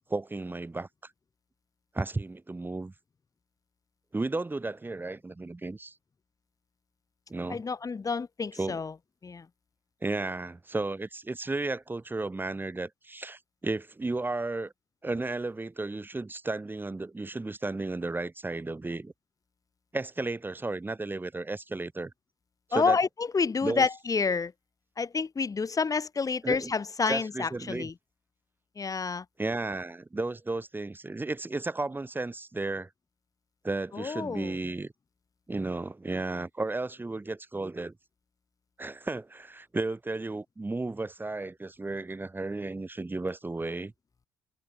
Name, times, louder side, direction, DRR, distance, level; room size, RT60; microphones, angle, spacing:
voice 1, 0.1-0.9 1.9-2.9 4.1-5.9 7.3-7.6 8.6-8.8 10.0-14.7 15.0-19.1 19.9-22.1 22.7-23.0 23.6-23.9 26.4-26.7 27.1-27.9 29.4-32.9 33.6-34.9 35.5-37.9 38.8-43.9, right 2 dB, 20° right, 2.1 m, -33 dB
voice 2, 7.5-8.9 9.2-9.5 22.7-24.5 25.0-27.9 28.8-29.2 33.9-34.5, left 5 dB, 35° left, 2.7 m, -29 dB
hypercardioid pair, 55°, 11 cm